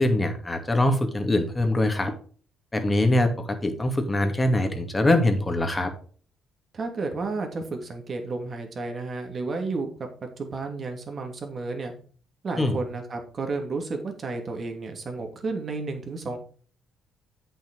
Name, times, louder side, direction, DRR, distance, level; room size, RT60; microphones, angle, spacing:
voice 1, 0.0-2.1 2.7-5.9 12.6-12.8, left 1 dB, 20° left, 6 dB, 2.4 m, -23 dB
voice 2, 6.7-11.9 12.4-16.4, right 3 dB, 45° right, 3 dB, 2.6 m, -32 dB
8.7 x 6.5 x 4.7 m, 0.43 s
hypercardioid pair, 50°, 0 cm